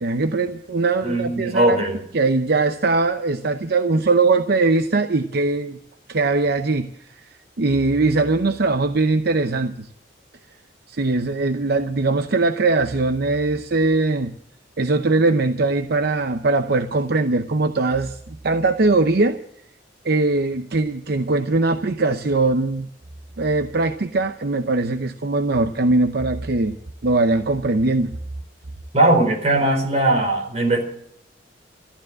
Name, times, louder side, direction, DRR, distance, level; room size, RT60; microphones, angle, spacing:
voice 1, 0.0-1.8 2.1-5.8 6.1-6.9 7.6-9.9 10.9-14.3 14.8-19.4 20.0-22.9 23.4-26.8 27.0-28.1, right 3 dB, 60° right, 8 dB, 0.8 m, -21 dB
voice 2, 1.0-2.0 28.9-30.8, right 1 dB, 40° right, 3 dB, 4.3 m, -19 dB
14.5 x 12.0 x 7.6 m, 0.70 s
head